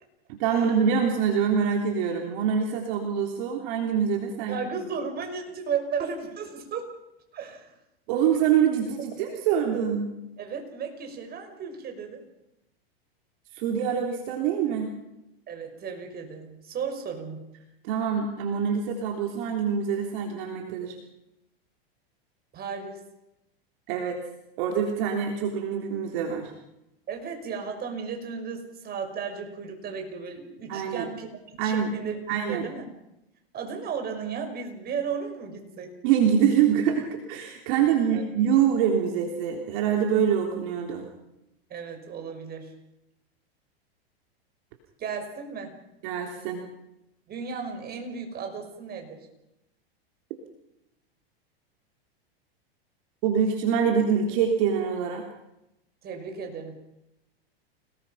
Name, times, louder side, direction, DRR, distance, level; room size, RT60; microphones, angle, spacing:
voice 1, 0.3-4.7 8.1-10.1 13.5-15.0 17.8-21.0 23.9-24.2 24.6-26.5 30.7-31.1 31.6-32.0 32.3-32.7 36.0-41.1 46.0-46.6 53.2-55.2, right 7 dB, 55° right, 2 dB, 3.5 m, -25 dB
voice 2, 4.5-6.9 7.3-7.7 10.4-12.2 15.5-17.4 22.5-23.0 27.1-32.2 32.5-32.9 33.5-35.9 38.1-38.2 41.7-42.7 45.0-45.7 47.3-49.3 56.0-56.7, right 6 dB, 30° right, 4 dB, 5.9 m, -34 dB
29.0 x 19.5 x 5.8 m, 0.89 s
hypercardioid pair, 115°, 30 cm